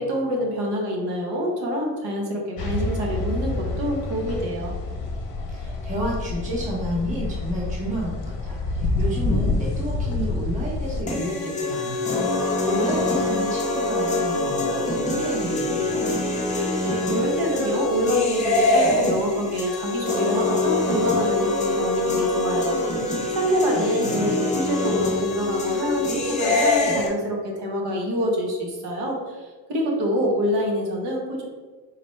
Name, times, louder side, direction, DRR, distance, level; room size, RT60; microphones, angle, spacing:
voice 1, 0.0-4.7 16.8-22.8 23.3-31.5, equal, 65° right, 0 dB, 1.0 m, -26 dB
sound 1, 2.6-11.0, left 2 dB, 55° left, 0.8 m, -27 dB
voice 2, 5.5-16.2 23.7-24.3, right 1 dB, 15° right, -5 dB, 0.9 m, -31 dB
sound 2, 11.1-27.1, left 2 dB, 15° left, 0.6 m, -24 dB
4.1 x 3.2 x 3.1 m, 1.4 s
cardioid pair, 170°, 43 cm